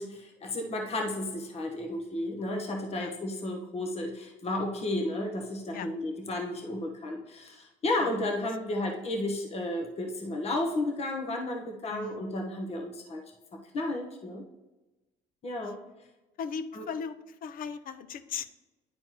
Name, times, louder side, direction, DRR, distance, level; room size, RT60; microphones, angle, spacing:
voice 1, 0.0-13.2 13.7-14.4 15.4-15.8 16.7-16.9, left 1 dB, 40° left, 2 dB, 1.1 m, -33 dB
voice 2, 11.9-12.2 15.9-16.0 16.4-18.5, left 6 dB, 55° left, 11 dB, 0.6 m, -38 dB
10.5 x 4.4 x 3.0 m, 1.1 s
cardioid pair, 110°, 17 cm